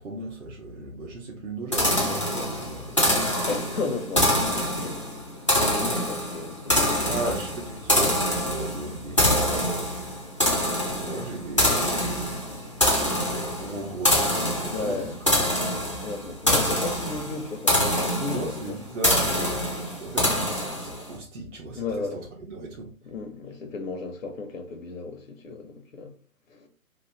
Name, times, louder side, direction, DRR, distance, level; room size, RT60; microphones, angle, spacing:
voice 1, 0.0-3.4 7.1-10.3 10.6-12.8 13.0-15.7 18.3-22.9, right 2 dB, 60° right, 0.8 m, -36 dB
sound 1, 1.7-21.1, left 1 dB, 25° left, 0.4 m, -25 dB
voice 2, 3.5-5.1 5.6-7.2 14.7-15.4 16.0-18.7 21.7-22.2 23.0-26.1 26.5-26.7, left 4 dB, 65° left, 0.7 m, -34 dB
3.0 x 2.5 x 2.8 m
figure-of-eight pair, 140°, 43 cm